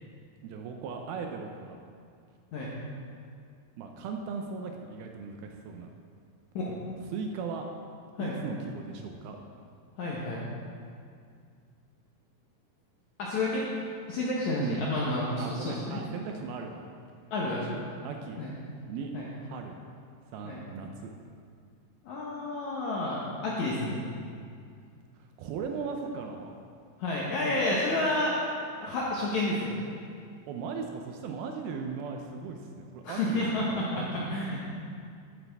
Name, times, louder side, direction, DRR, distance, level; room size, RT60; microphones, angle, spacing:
voice 1, 0.4-1.8 3.8-5.9 7.1-7.7 8.2-9.4 14.6-14.8 15.4-16.8 17.6-18.4 18.9-19.1 19.4-19.7 20.3-21.1 25.4-26.6 30.5-33.4 33.7-34.3, right 5 dB, 80° right, 3 dB, 2.3 m, -38 dB
voice 2, 10.0-10.4 13.2-13.7 14.1-16.0 17.3-17.6 18.4-18.5 19.1-19.3 20.4-20.6 22.0-24.0 27.0-28.4 28.8-29.8 33.0-34.7, left 2 dB, 70° left, -5 dB, 1.8 m, -30 dB
12.5 x 8.1 x 3.5 m, 2.3 s
omnidirectional pair, 4.7 m